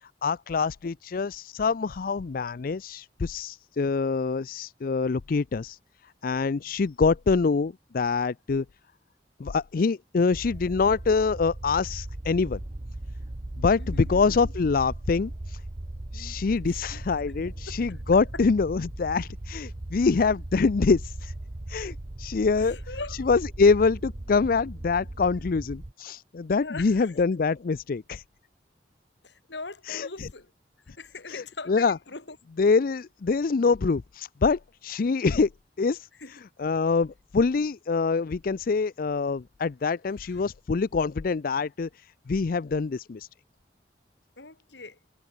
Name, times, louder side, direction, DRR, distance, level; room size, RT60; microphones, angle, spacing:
voice 1, 0.2-5.8 6.2-8.6 9.4-12.6 13.6-15.6 16.1-21.3 21.7-22.8 23.2-28.2 29.9-30.3 31.3-32.0 32.6-35.5 35.8-36.1 36.6-41.9 42.3-43.3, left 4 dB, 55° left, 0.4 m, -25 dB
sound 1, 10.3-25.9, right 1 dB, 40° right, 1.0 m, -38 dB
voice 2, 13.8-14.5 16.1-17.0 17.4-17.8 18.3-18.4 22.5-23.3 26.6-27.1 29.2-30.5 30.9-32.4 36.2-36.3 40.2-40.4 44.4-45.0, left 3 dB, 90° left, 3.4 m, -42 dB
head